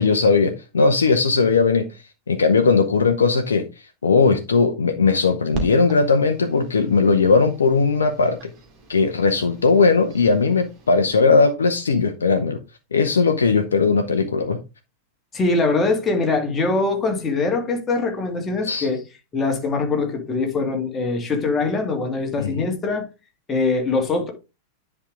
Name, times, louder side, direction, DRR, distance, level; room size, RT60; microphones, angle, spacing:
voice 1, 0.0-1.9 2.3-3.7 4.0-8.5 8.9-12.6 12.9-14.6 18.6-18.9 22.4-22.7, left 4 dB, 70° left, 0.8 m, -18 dB
sound 1, 5.5-11.2, right 3 dB, 35° right, 2.4 m, -39 dB
voice 2, 15.3-19.0 19.3-23.0 23.5-24.3, left 3 dB, 20° left, 2.3 m, -22 dB
10.0 x 4.8 x 3.6 m
figure-of-eight pair, 90°, 0 cm